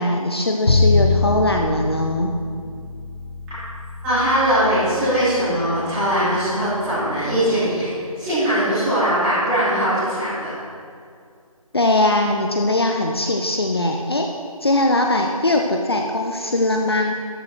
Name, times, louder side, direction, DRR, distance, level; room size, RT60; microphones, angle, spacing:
voice 1, 0.0-2.3 11.7-14.3 14.6-17.1, left 2 dB, 40° left, 2 dB, 0.9 m, -20 dB
Bowed string instrument, 0.7-6.8, left 3 dB, 75° left, 1.3 m, -24 dB
voice 2, 4.0-7.9 8.2-10.5, equal, 5° right, -16 dB, 3.2 m, -20 dB
13.0 x 12.0 x 4.6 m, 2.2 s
figure-of-eight pair, 175°, 19 cm